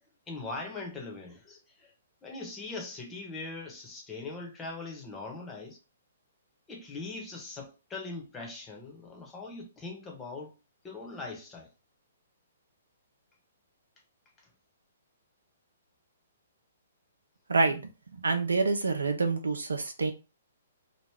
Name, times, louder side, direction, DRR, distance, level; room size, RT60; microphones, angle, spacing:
voice 1, 0.3-1.9 2.2-5.8 6.7-10.5 10.8-11.7, left 3 dB, 15° left, 1.1 m, -41 dB
voice 2, 17.5-17.9 18.2-20.1, right 3 dB, 85° right, 0.7 m, -27 dB
3.0 x 2.5 x 3.5 m
hypercardioid pair, 130°, 0 cm